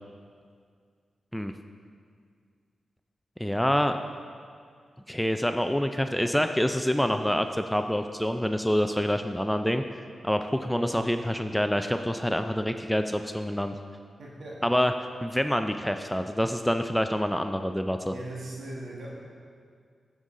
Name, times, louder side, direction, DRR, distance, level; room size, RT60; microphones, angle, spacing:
voice 1, 3.4-4.0 5.1-9.8 10.2-13.7 14.6-14.9 15.2-18.1, equal, 5° left, 7 dB, 0.4 m, -26 dB
voice 2, 10.5-10.9 14.2-14.5 18.1-19.1, right 2 dB, 75° right, -5 dB, 1.5 m, -39 dB
14.5 x 5.4 x 3.8 m, 2.2 s
cardioid pair, 45°, 0 cm